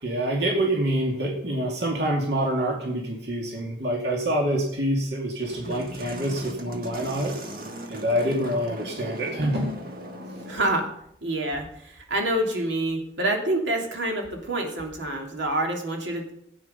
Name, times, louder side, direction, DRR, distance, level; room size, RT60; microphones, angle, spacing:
voice 1, 0.0-7.3 7.9-9.8, right 1 dB, 65° right, -1 dB, 2.2 m, -26 dB
sound 1, 5.4-10.8, equal, 50° right, 1.5 m, -39 dB
voice 2, 10.5-10.9 11.2-16.3, right 1 dB, 85° right, 1 dB, 2.5 m, -27 dB
15.5 x 8.8 x 5.5 m, 0.73 s
head